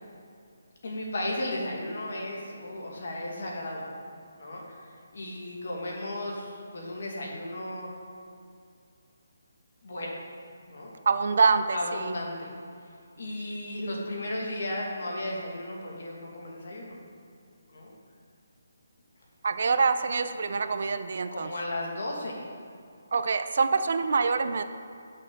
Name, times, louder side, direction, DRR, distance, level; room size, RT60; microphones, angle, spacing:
voice 1, 0.8-3.9 4.4-7.9 9.8-10.2 10.7-10.9 11.7-12.5 13.2-16.9 17.7-17.9 21.3-22.5, left 1 dB, 55° left, -2 dB, 2.2 m, -35 dB
voice 2, 11.1-12.2 19.4-21.5 23.1-24.6, right 4 dB, 50° right, 10 dB, 0.5 m, -25 dB
12.0 x 6.5 x 3.8 m, 2.5 s
hypercardioid pair, 175°, 0 cm